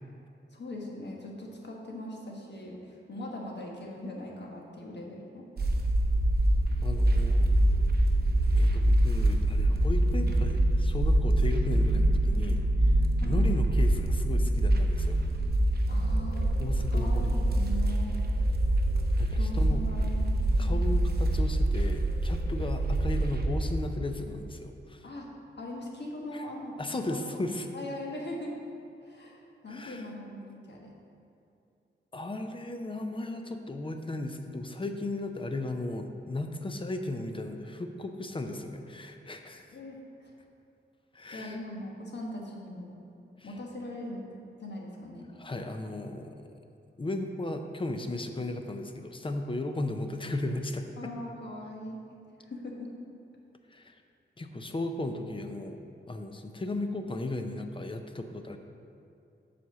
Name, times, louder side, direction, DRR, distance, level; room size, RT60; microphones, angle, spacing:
voice 1, 0.5-5.5 13.2-13.4 15.9-16.5 16.9-18.2 19.4-20.3 20.6-20.8 25.0-25.3 25.5-26.7 27.1-27.4 27.7-28.5 29.0-30.9 39.7-40.3 41.3-43.0 43.4-44.3 44.6-45.3 51.0-52.0 52.4-52.9, left 1 dB, 60° left, -1 dB, 1.3 m, -40 dB
sound 1, 5.6-23.7, right 1 dB, 55° right, 0.7 m, -25 dB
voice 2, 6.8-7.5 8.6-15.2 16.6-17.5 19.2-19.8 20.6-25.1 26.3-26.4 26.8-27.7 29.7-30.0 32.1-39.7 41.1-41.6 43.4-43.5 45.4-46.4 47.0-51.1 53.7-54.0 54.4-55.8 56.1-58.6, left 2 dB, 25° left, 6 dB, 0.5 m, -36 dB
7.7 x 4.2 x 6.8 m, 2.6 s
wide cardioid pair, 130°, 20 cm